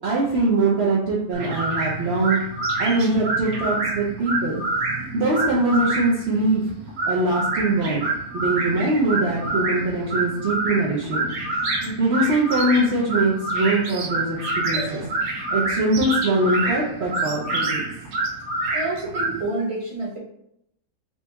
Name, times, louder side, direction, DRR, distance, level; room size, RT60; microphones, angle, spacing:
voice 1, 0.0-2.4 2.8-4.6 5.1-6.7 7.1-8.1 8.3-11.2 11.8-15.0 15.5-17.8, right 2 dB, 55° right, -6 dB, 1.0 m, -22 dB
sound 1, 1.3-19.4, right 2 dB, 80° right, 1.4 m, -27 dB
voice 2, 14.7-15.1 18.7-20.2, right 2 dB, 25° right, -4 dB, 1.2 m, -29 dB
4.5 x 2.8 x 3.4 m, 0.77 s
omnidirectional pair, 1.5 m